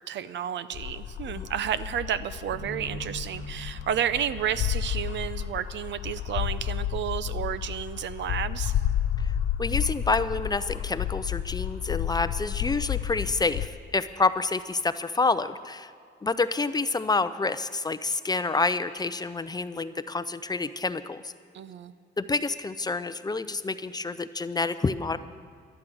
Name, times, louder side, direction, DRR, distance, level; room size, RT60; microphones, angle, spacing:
voice 1, 0.0-8.7 21.5-21.9, right 9 dB, 65° right, 14 dB, 0.6 m, -31 dB
sound 1, 0.7-13.7, left 10 dB, 70° left, 0.6 m, -31 dB
sound 2, 2.5-5.7, right 1 dB, 25° right, 3.9 m, -44 dB
voice 2, 9.6-15.9 16.2-21.3 22.2-25.2, left 3 dB, 20° left, 13 dB, 0.5 m, -28 dB
12.0 x 12.0 x 6.3 m, 2.3 s
cardioid pair, 90°, 20 cm